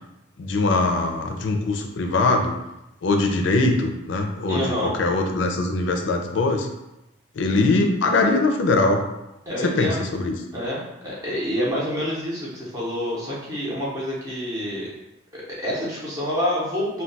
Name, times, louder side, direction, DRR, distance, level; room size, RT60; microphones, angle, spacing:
voice 1, 0.4-2.5 3.0-6.7 7.4-9.0 9.6-10.4, left 2 dB, 70° left, 3 dB, 0.4 m, -22 dB
voice 2, 4.5-4.9 9.5-10.1 10.5-14.9 15.3-17.0, equal, 15° right, -7 dB, 0.7 m, -27 dB
2.3 x 2.2 x 3.9 m, 0.92 s
head